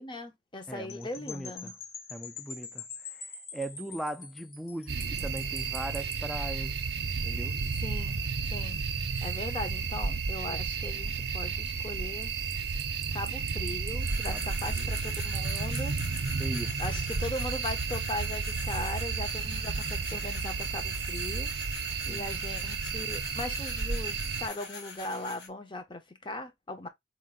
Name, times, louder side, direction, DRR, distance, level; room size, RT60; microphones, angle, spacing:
voice 1, 0.0-1.7 7.8-8.3 8.5-8.9 9.2-12.4 13.1-16.0 16.8-21.5 22.1-26.9, left 2 dB, 25° left, 0.8 m, -39 dB
voice 2, 0.7-1.7 2.1-2.9 3.1-3.3 3.5-6.8 7.2-7.6 14.3-14.9 16.4-16.8 22.1-22.3, right 1 dB, ahead, 0.4 m, -39 dB
sound 1, 0.9-6.2, left 5 dB, 55° left, 1.1 m, -45 dB
sound 2, 4.9-24.5, right 5 dB, 60° right, 0.6 m, -32 dB
sound 3, 14.0-25.5, left 3 dB, 70° left, 1.5 m, -44 dB
4.4 x 2.5 x 3.7 m
head